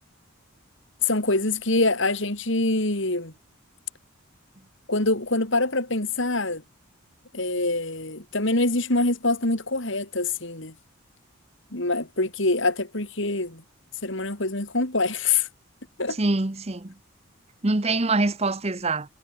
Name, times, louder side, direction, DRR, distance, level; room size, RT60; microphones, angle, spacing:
voice 1, 1.0-3.3 4.9-6.6 7.3-10.7 11.7-13.6 14.0-15.5 16.0-16.2, left 2 dB, 60° left, 3.1 m, -25 dB
voice 2, 16.2-16.9 17.6-19.1, right 2 dB, 30° right, 0.9 m, -24 dB
head